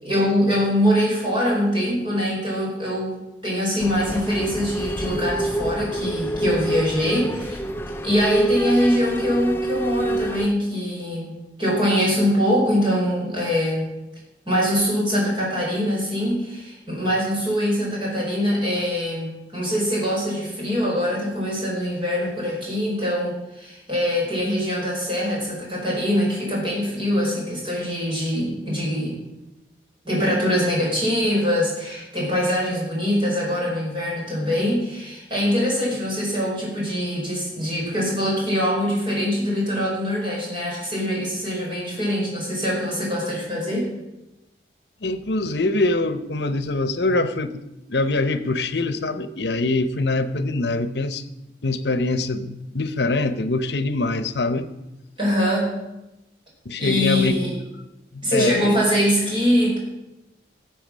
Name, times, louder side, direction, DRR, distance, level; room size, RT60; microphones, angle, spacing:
voice 1, 0.0-7.6 8.0-11.3 11.6-13.8 14.5-29.2 30.0-43.9 55.2-55.7 56.8-57.5 58.2-59.8, equal, 30° right, -4 dB, 4.8 m, -23 dB
sound 1, 3.8-10.5, right 1 dB, 15° left, 0.4 m, -26 dB
voice 2, 45.0-47.6 47.9-51.2 51.6-54.7 56.6-57.3 58.1-58.8, left 2 dB, 70° left, 12 dB, 0.9 m, -24 dB
14.5 x 7.7 x 6.3 m, 0.96 s
head